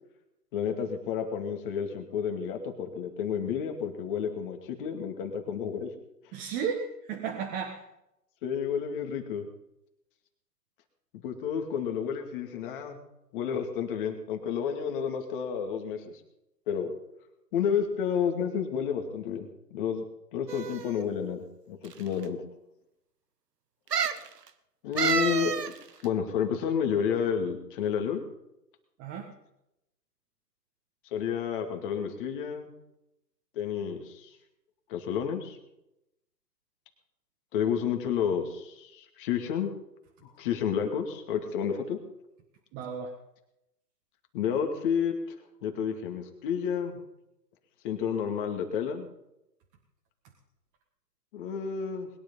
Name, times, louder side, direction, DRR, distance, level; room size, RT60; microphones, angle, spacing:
voice 1, 0.5-5.9 8.4-9.5 11.2-13.0 13.3-16.0 16.7-16.9 17.5-20.0 20.3-22.4 24.8-25.7 26.0-28.2 31.1-32.7 33.5-34.3 34.9-35.6 37.5-39.7 40.2-42.0 44.3-45.2 45.6-47.0 47.8-49.1 51.3-52.1, left 7 dB, 30° left, 4 dB, 2.3 m, -30 dB
voice 2, 6.3-7.8 29.0-29.3 42.7-43.1, right 6 dB, 20° right, 1 dB, 1.8 m, -34 dB
sound 1, 20.5-21.0 21.8-21.9 22.2-22.3 23.9-24.3 25.0-25.7 26.0-26.1, right 7 dB, 70° right, 1.6 m, -29 dB
21.0 x 10.5 x 5.5 m, 0.85 s
hypercardioid pair, 140°, 49 cm